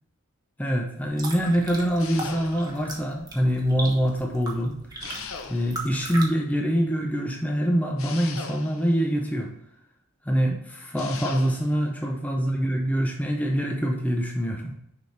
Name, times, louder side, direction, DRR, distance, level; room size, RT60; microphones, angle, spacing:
voice 1, 0.6-4.7 5.5-9.5 10.2-14.8, equal, 5° left, 1 dB, 0.6 m, -25 dB
sound 1, 0.9-6.3, right 2 dB, 15° right, 1.0 m, -38 dB
sound 2, 2.0-2.9 5.0-6.0 8.0-9.0 11.0-11.8, left 5 dB, 65° left, 0.6 m, -39 dB
6.8 x 4.9 x 3.2 m, 0.79 s
head